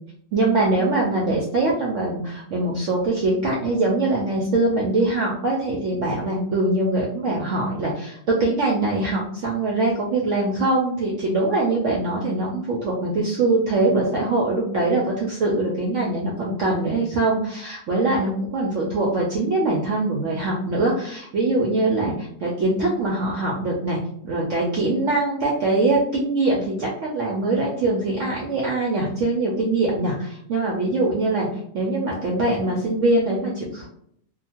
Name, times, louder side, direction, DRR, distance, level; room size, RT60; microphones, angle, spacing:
voice 1, 0.3-24.0 24.2-31.5 31.7-33.9, right 2 dB, 70° right, -3 dB, 0.7 m, -23 dB
2.8 x 2.1 x 2.8 m, 0.67 s
omnidirectional pair, 1.9 m